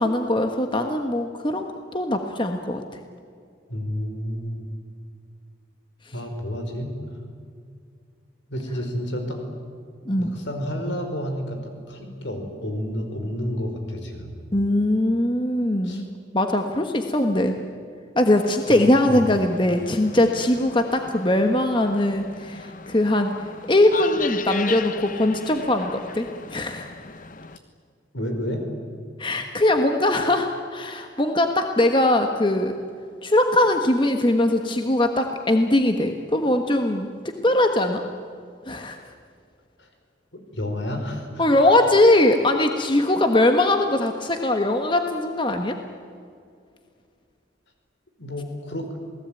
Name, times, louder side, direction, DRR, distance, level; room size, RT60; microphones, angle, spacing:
voice 1, 0.0-2.8 10.1-10.3 14.5-17.5 18.1-23.4 23.7-26.9 29.2-32.8 33.2-37.1 37.4-38.0 38.7-39.0 41.4-45.8, left 1 dB, 25° left, 5 dB, 1.2 m, -21 dB
voice 2, 3.7-4.6 6.1-6.9 8.5-9.4 10.2-14.3 15.8-16.0 18.7-18.8 19.0-19.3 28.1-28.6 39.8-39.9 40.3-41.7 48.2-48.9, equal, 70° left, 4 dB, 5.1 m, -30 dB
sound 1, 18.4-27.6, left 4 dB, 45° left, 0.9 m, -36 dB
28.5 x 18.5 x 9.1 m, 2.3 s
head